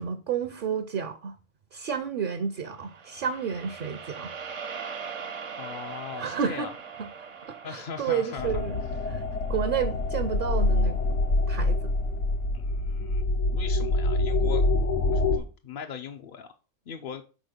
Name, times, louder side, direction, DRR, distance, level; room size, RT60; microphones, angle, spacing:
voice 1, 0.0-1.3 1.7-4.3 6.2-6.7 7.0-7.1 7.4-8.8 9.1-9.2 9.5-11.0 11.5-11.9, right 7 dB, 55° right, 0.7 m, -31 dB
sound 1, 2.7-11.1, right 6 dB, 70° right, 1.2 m, -41 dB
voice 2, 5.5-6.7 7.6-8.5 12.5-14.6 15.1-16.5 16.9-17.2, left 7 dB, 55° left, 0.6 m, -39 dB
sound 2, 8.4-15.4, left 2 dB, 80° left, 1.3 m, -26 dB
6.2 x 4.2 x 5.1 m
omnidirectional pair, 1.2 m